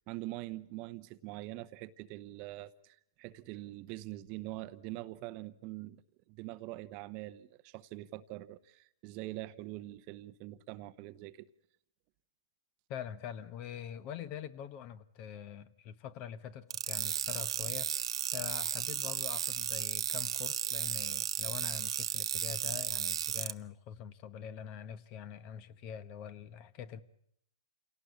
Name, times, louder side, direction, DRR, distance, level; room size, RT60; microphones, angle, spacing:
voice 1, 0.1-6.0 6.3-11.5, right 17 dB, 35° right, 0.9 m, -44 dB
voice 2, 12.9-18.0 18.3-27.0, left 9 dB, 35° left, 1.2 m, -44 dB
sound 1, 16.7-23.5, right 9 dB, 75° right, 0.9 m, -34 dB
27.5 x 18.0 x 8.4 m
hypercardioid pair, 135°, 3 cm